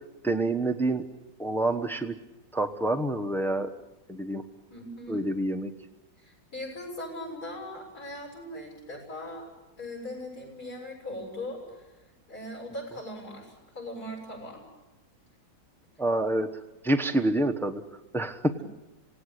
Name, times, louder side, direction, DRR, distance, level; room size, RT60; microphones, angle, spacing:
voice 1, 0.2-1.0 1.4-2.1 2.5-3.7 4.1-4.4 5.1-5.7 16.0-16.5 16.8-17.8 18.1-18.5, right 1 dB, ahead, 5 dB, 0.6 m, -27 dB
voice 2, 4.7-5.3 6.2-9.5 9.8-11.9 12.3-14.6 17.2-17.3 18.6-18.7, left 1 dB, 50° left, 2 dB, 7.4 m, -40 dB
27.0 x 18.0 x 8.2 m, 1.0 s
omnidirectional pair, 2.0 m